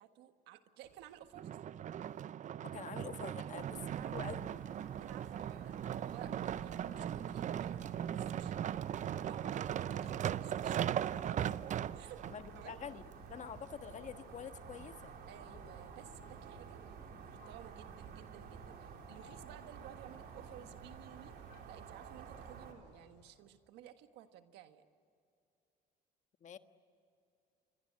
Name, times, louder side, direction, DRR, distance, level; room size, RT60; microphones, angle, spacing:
voice 1, 0.0-1.5 3.4-4.2 5.0-5.7 6.1-8.5 9.2-12.2 12.5-12.8 15.3-16.8 17.2-21.3 21.6-24.9, right 12 dB, 90° right, 8 dB, 1.5 m, -55 dB
sound 1, 1.3-12.3 13.0-13.1, right 10 dB, 45° right, 0.6 m, -38 dB
voice 2, 2.6-3.7 4.0-4.5 12.3-13.0 13.3-15.1 26.4-26.6, left 8 dB, 45° left, 9 dB, 1.4 m, -46 dB
sound 2, 3.6-22.7, right 6 dB, 70° right, 4.1 m, -51 dB
sound 3, 4.6-23.3, left 8 dB, 85° left, 3.5 m, -65 dB
28.0 x 23.5 x 8.5 m, 2.5 s
cardioid pair, 110°, 17 cm